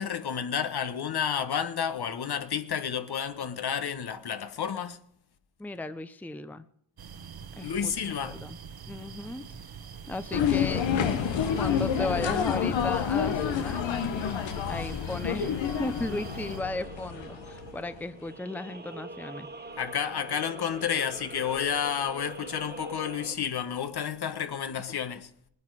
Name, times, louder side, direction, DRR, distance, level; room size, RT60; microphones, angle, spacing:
voice 1, 0.0-5.0 7.6-8.4 19.8-25.3, left 8 dB, 55° left, 1.3 m, -31 dB
voice 2, 5.6-6.7 7.6-8.6 8.9-9.5 10.1-11.2 11.6-13.8 14.7-19.8, left 2 dB, 5° left, 0.7 m, -36 dB
sound 1, 7.0-16.6, right 6 dB, 55° right, 1.3 m, -45 dB
sound 2, 10.3-17.8, left 8 dB, 75° left, 1.3 m, -28 dB
sound 3, 16.0-23.4, right 3 dB, 20° right, 1.9 m, -44 dB
19.5 x 9.8 x 4.8 m
cardioid pair, 75°, 45 cm